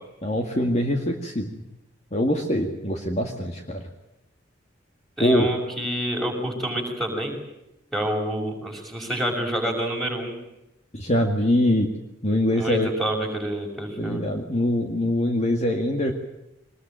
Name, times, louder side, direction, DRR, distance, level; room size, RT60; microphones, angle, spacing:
voice 1, 0.2-1.5 2.1-3.8 5.2-5.5 10.9-11.9 12.2-12.9 14.0-16.1, left 1 dB, 35° left, 3 dB, 2.0 m, -23 dB
voice 2, 5.2-7.4 7.9-10.4 12.5-14.2, right 1 dB, ahead, -1 dB, 6.3 m, -28 dB
23.5 x 21.0 x 9.1 m, 0.91 s
head